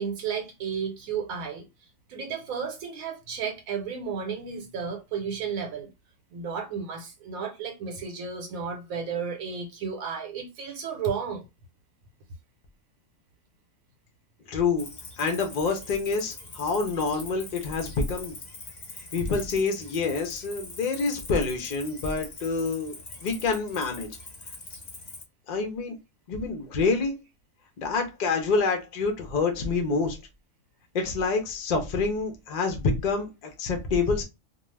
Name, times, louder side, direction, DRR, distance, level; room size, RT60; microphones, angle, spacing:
voice 1, 0.0-1.7 2.1-5.9 6.3-11.4, right 6 dB, 85° right, 1.1 m, -33 dB
voice 2, 14.5-14.9 15.2-18.4 19.0-22.9 23.2-24.1 25.5-26.0 26.3-27.2 27.8-30.2 30.9-34.2, left 4 dB, 60° left, 0.4 m, -27 dB
Cricket, 14.8-25.2, left 2 dB, 40° left, 0.7 m, -43 dB
2.4 x 2.3 x 3.1 m
omnidirectional pair, 1.4 m